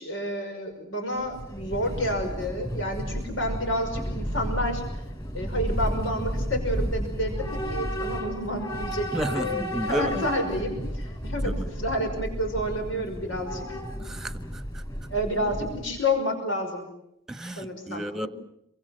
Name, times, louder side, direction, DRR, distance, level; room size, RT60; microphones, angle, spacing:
voice 1, 0.0-4.8 5.3-13.6 15.1-16.9 17.6-18.3, equal, 85° left, 5.7 m, -30 dB
Train / Subway metro underground, 1.2-16.0, equal, 20° left, 6.2 m, -32 dB
voice 2, 9.1-10.2 11.4-11.7 14.0-14.8 17.3-18.3, equal, 5° right, 1.4 m, -32 dB
27.5 x 24.0 x 7.9 m
head